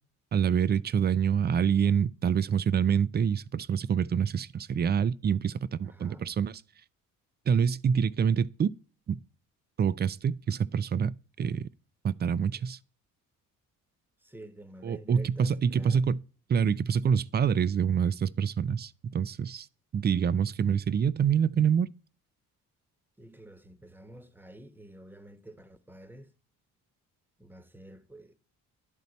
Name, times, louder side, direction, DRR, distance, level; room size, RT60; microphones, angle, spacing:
voice 1, 0.3-6.5 7.5-8.7 9.1-9.2 9.8-11.7 12.0-12.8 14.8-16.2 16.5-19.7 19.9-21.9, right 7 dB, 30° right, 0.4 m, -26 dB
voice 2, 5.8-6.3 14.2-16.1 23.2-26.3 27.4-28.3, right 1 dB, 5° right, 1.0 m, -49 dB
11.0 x 4.1 x 4.0 m
supercardioid pair, 60°, 36 cm